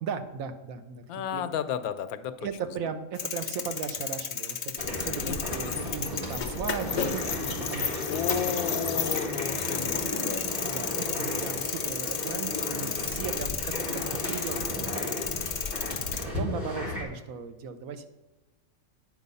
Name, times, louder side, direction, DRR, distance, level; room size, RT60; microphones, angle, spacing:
voice 1, 0.0-1.0 1.3-1.4 2.4-8.1 8.7-8.8 10.6-15.7 16.0-18.1, right 6 dB, 75° right, 8 dB, 1.2 m, -37 dB
voice 2, 1.1-2.5 5.2-5.9 8.0-10.4 15.7-16.0, left 8 dB, 90° left, 11 dB, 1.0 m, -33 dB
sound 1, 3.1-16.2, left 7 dB, 55° left, 0.5 m, -33 dB
sound 2, 4.8-17.0, left 1 dB, 50° right, 2.4 m, -35 dB
9.7 x 4.7 x 5.4 m, 1.1 s
omnidirectional pair, 1.5 m